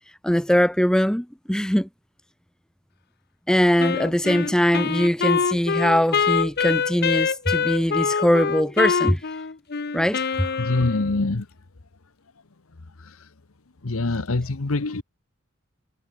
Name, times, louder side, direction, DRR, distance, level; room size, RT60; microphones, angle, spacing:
voice 1, 0.2-1.9 3.5-9.2 9.9-10.5, equal, 5° left, 0.7 m, -21 dB
Wind instrument woodwind instrument, 3.8-11.3, left 5 dB, 50° left, 0.8 m, -25 dB
voice 2, 10.6-11.5 12.8-13.3 13.8-15.0, left 2 dB, 75° left, 1.1 m, -25 dB
head